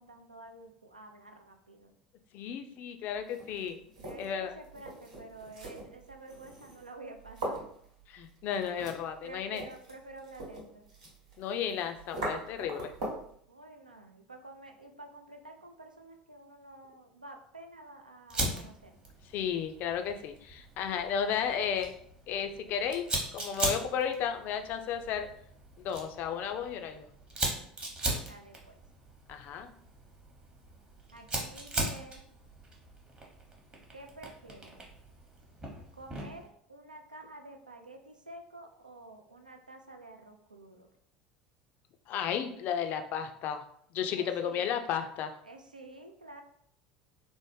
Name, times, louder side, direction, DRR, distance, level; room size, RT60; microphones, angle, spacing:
voice 1, 0.0-1.9 4.0-7.7 9.2-10.9 13.5-19.0 20.9-21.1 28.2-28.8 31.1-32.2 33.9-34.8 35.9-40.9 44.1-44.8 45.4-46.4, right 2 dB, 85° right, 4 dB, 0.3 m, -50 dB
voice 2, 2.3-3.8 4.2-4.6 8.1-9.6 11.4-12.9 19.3-21.9 22.3-25.3 25.8-27.1 29.3-29.7 42.1-43.6 43.9-45.3, left 8 dB, 45° left, 7 dB, 0.4 m, -33 dB
sound 1, 3.1-13.3, right 1 dB, 65° right, 1.0 m, -42 dB
Fire, 18.3-36.5, right 1 dB, 25° right, 0.8 m, -39 dB
3.5 x 2.0 x 3.1 m, 0.66 s
figure-of-eight pair, 70°, 4 cm